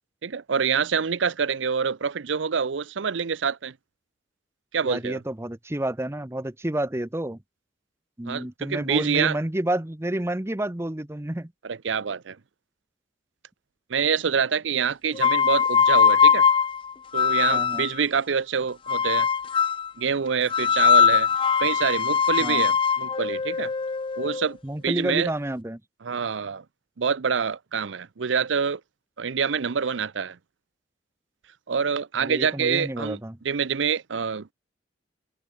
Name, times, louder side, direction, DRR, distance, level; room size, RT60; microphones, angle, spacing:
voice 1, 0.2-3.7 4.7-5.2 8.3-9.4 11.6-12.4 13.9-16.5 17.1-19.3 20.0-21.3 21.6-23.7 24.2-24.6 24.8-25.3 26.0-26.6 27.0-28.8 29.2-30.4 31.7-33.2 33.4-34.5, right 6 dB, 85° right, 0.6 m, -26 dB
voice 2, 4.8-7.4 8.2-11.5 17.5-17.9 22.4-22.6 24.6-25.8 32.2-33.4, right 1 dB, 15° right, 0.8 m, -29 dB
sound 1, 15.1-18.0 18.9-19.9 20.5-24.5, left 7 dB, 30° left, 0.4 m, -21 dB
head